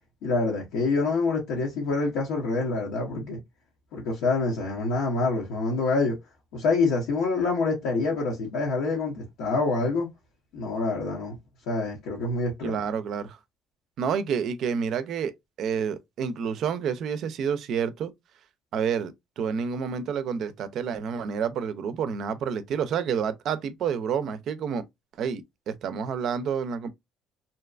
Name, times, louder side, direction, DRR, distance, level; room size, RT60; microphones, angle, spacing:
voice 1, 0.2-3.4 3.9-6.2 6.5-10.1 10.5-11.3 11.7-12.8, left 3 dB, 85° left, 0.8 m, -26 dB
voice 2, 12.6-13.4 14.0-15.3 15.6-18.1 18.7-24.8 25.2-26.9, right 7 dB, 65° right, 0.4 m, -29 dB
2.6 x 2.2 x 2.4 m
cardioid pair, 90°, 0 cm